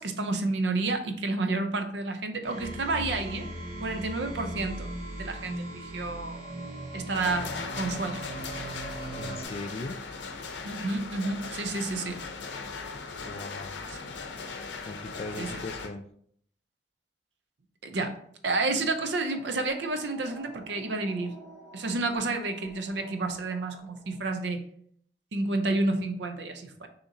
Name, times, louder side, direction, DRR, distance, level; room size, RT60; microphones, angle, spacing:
voice 1, 0.0-3.5 3.8-4.9 5.2-6.4 6.9-8.2 10.6-12.2 13.9-14.0 15.4-15.5 17.8-18.1 18.4-21.3 21.7-24.6 25.3-26.9, right 2 dB, 75° right, 6 dB, 0.6 m, -30 dB
sound 1, 2.4-9.4, right 1 dB, 45° right, 1.2 m, -38 dB
sound 2, 7.1-15.9, left 4 dB, 80° left, 0.6 m, -38 dB
voice 2, 9.1-10.0 13.2-13.8 14.8-16.1, left 2 dB, 35° left, 8 dB, 0.3 m, -38 dB
sound 3, 19.1-24.3, right 2 dB, 10° right, 0.8 m, -50 dB
6.3 x 2.9 x 2.7 m, 0.64 s
head